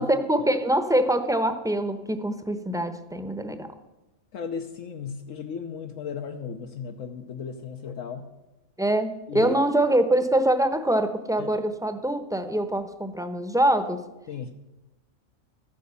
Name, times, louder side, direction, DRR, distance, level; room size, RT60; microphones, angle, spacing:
voice 1, 0.0-3.7 8.8-14.0, right 1 dB, 5° right, 9 dB, 0.7 m, -24 dB
voice 2, 4.3-8.3 9.3-9.5 11.4-11.5 14.3-14.5, left 6 dB, 75° left, 4 dB, 1.2 m, -35 dB
13.5 x 9.4 x 6.9 m, 1.0 s
omnidirectional pair, 1.4 m